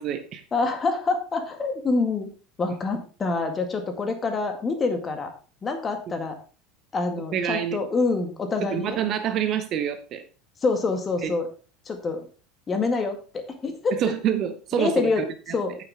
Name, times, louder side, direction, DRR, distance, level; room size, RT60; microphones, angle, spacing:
voice 1, 0.0-0.4 7.3-7.8 8.6-10.2 11.2-11.3 14.0-15.6, right 9 dB, 45° right, 8 dB, 1.0 m, -27 dB
voice 2, 0.5-2.3 2.6-5.3 5.6-6.4 6.9-9.0 10.6-11.5 11.9-12.3 12.7-14.0 14.7-15.2 15.5-15.8, left 3 dB, 25° left, 6 dB, 1.9 m, -26 dB
8.9 x 7.6 x 3.5 m, 0.36 s
figure-of-eight pair, 70°, 0 cm